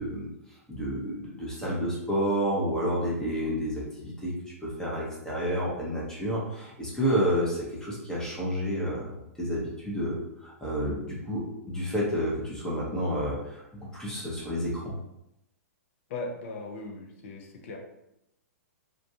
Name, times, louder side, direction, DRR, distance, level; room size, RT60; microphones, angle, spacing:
voice 1, 0.0-4.3 4.6-14.9, equal, 5° left, -5 dB, 0.7 m, -30 dB
voice 2, 16.1-17.8, left 3 dB, 50° left, 2 dB, 0.6 m, -38 dB
2.5 x 2.2 x 2.6 m, 0.85 s
figure-of-eight pair, 115°, 8 cm